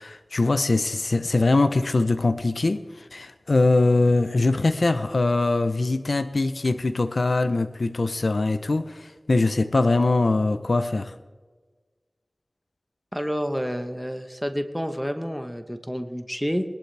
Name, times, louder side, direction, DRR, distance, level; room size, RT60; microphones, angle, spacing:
voice 1, 0.0-11.1, left 2 dB, 75° left, 0.7 m, -22 dB
voice 2, 13.1-16.6, equal, ahead, 1.1 m, -29 dB
20.5 x 11.5 x 3.4 m
wide cardioid pair, 40°, 0 cm